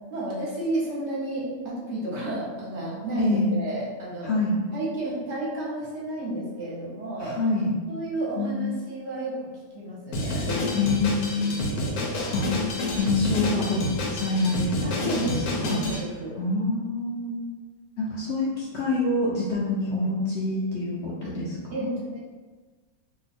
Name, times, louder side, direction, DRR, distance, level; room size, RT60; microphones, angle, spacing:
voice 1, 0.1-4.3 4.7-7.4 7.9-9.5 9.7-12.3 14.8-16.4 21.2-21.3 21.7-22.2, right 1 dB, 55° right, -6 dB, 1.1 m, -32 dB
voice 2, 3.2-3.5 4.2-4.6 7.2-7.7 8.4-8.7 10.7-11.6 12.3-12.5 12.9-14.9 15.2-15.3 15.6-15.8 16.4-17.5 18.0-21.9, left 2 dB, 60° left, -5 dB, 0.8 m, -26 dB
Drum kit, 10.1-16.0, left 1 dB, 90° left, 1.2 m, -29 dB
2.8 x 2.3 x 4.1 m, 1.4 s
omnidirectional pair, 1.5 m